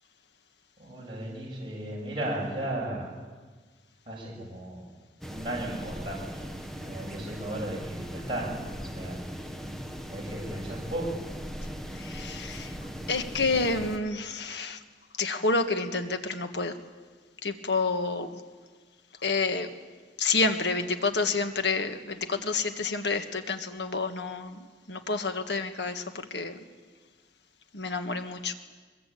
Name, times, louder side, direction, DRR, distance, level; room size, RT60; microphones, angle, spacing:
voice 1, 0.8-3.1 4.1-4.9 5.3-6.4 6.8-9.2 10.1-11.2, right 1 dB, 25° right, -3 dB, 7.0 m, -35 dB
sound 1, 5.2-14.0, equal, ahead, 1.4 m, -39 dB
voice 2, 11.9-12.8 13.1-14.8 15.1-16.8 17.4-18.4 19.2-19.7 20.2-26.6 27.7-28.5, left 3 dB, 70° left, 7 dB, 1.7 m, -29 dB
22.5 x 22.5 x 8.6 m, 1.4 s
head